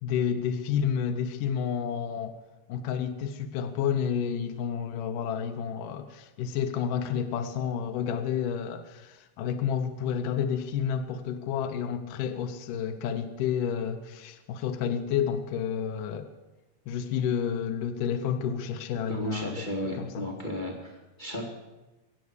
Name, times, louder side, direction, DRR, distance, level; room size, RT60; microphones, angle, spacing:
voice 1, 0.0-2.3 2.7-16.3 16.9-19.7 20.0-20.3, left 8 dB, 75° left, 5 dB, 1.9 m, -30 dB
voice 2, 19.1-20.9 21.2-21.5, equal, 45° left, -1 dB, 0.6 m, -34 dB
24.0 x 8.4 x 6.5 m, 1.1 s
omnidirectional pair, 4.9 m